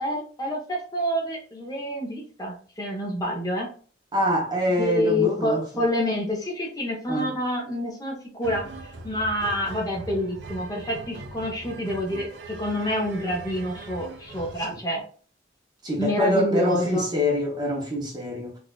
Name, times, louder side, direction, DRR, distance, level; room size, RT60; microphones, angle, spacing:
voice 1, 0.0-3.7 4.8-15.0 16.0-17.1, equal, 20° left, 0.8 m, -27 dB
voice 2, 4.1-5.8 7.1-7.3 14.7-14.8 15.8-18.6, left 1 dB, 20° right, 0.7 m, -25 dB
sound 1, 8.4-14.7, right 2 dB, 70° right, 0.5 m, -41 dB
4.1 x 2.3 x 2.3 m
head